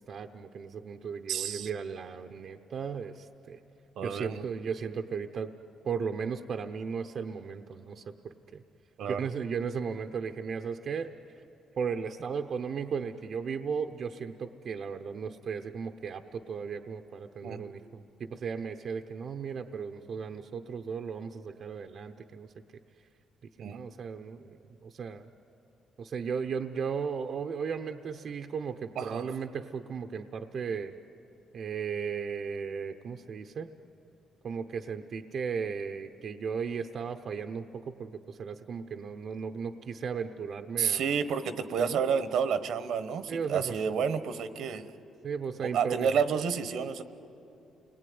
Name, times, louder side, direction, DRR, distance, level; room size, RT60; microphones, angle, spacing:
voice 1, 0.0-3.6 4.0-5.5 5.8-8.6 9.1-11.1 11.8-22.5 23.6-25.3 26.0-30.9 31.5-33.7 34.4-41.0 41.8-42.0 43.3-43.7 45.2-46.1, right 6 dB, 55° right, 6 dB, 0.9 m, -36 dB
voice 2, 1.3-1.7 4.0-4.4 9.0-9.3 17.4-17.6 23.6-23.8 29.0-29.3 40.8-44.9 45.6-47.0, right 7 dB, 75° right, 12 dB, 1.2 m, -30 dB
29.0 x 20.0 x 9.5 m, 2.8 s
cardioid pair, 90°, 0 cm